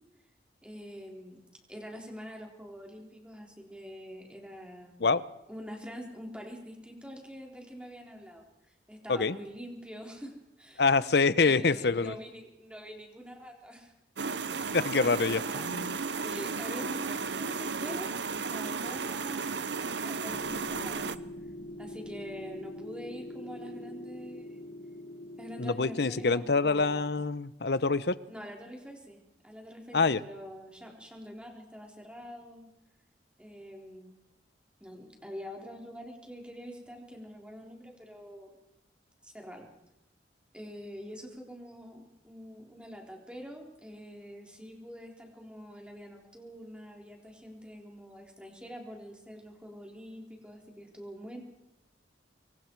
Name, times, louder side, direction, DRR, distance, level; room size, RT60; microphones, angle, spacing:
voice 1, 0.6-1.4 1.7-5.0 5.5-10.9 11.4-13.9 14.5-15.6 16.0-21.1 21.4-21.5 21.8-24.7 25.4-27.1 28.3-32.7 33.4-34.1 34.8-38.6 39.2-39.7 40.5-51.4, equal, 5° right, 0 dB, 3.8 m, -45 dB
voice 2, 10.8-12.1 14.7-15.9 25.6-28.2 29.9-30.2, left 4 dB, 65° left, 16 dB, 0.8 m, -26 dB
sound 1, 14.2-21.2, right 5 dB, 75° right, 0.8 m, -34 dB
sound 2, 20.3-26.7, left 1 dB, 85° left, 4.7 m, -44 dB
26.0 x 23.0 x 4.7 m, 0.86 s
head